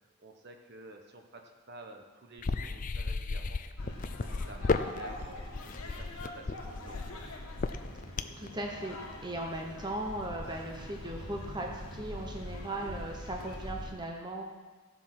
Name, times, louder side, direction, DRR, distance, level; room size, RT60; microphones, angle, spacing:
voice 1, 0.2-3.6 4.0-5.4 5.8-7.2, right 2 dB, 50° right, 3 dB, 1.1 m, -51 dB
sound 1, 2.4-8.5, left 3 dB, 35° left, 0.4 m, -33 dB
sound 2, 3.8-13.9, left 1 dB, 75° left, 2.0 m, -43 dB
voice 2, 8.4-14.4, right 1 dB, 20° right, 1 dB, 1.0 m, -38 dB
15.5 x 7.6 x 6.0 m, 1.4 s
head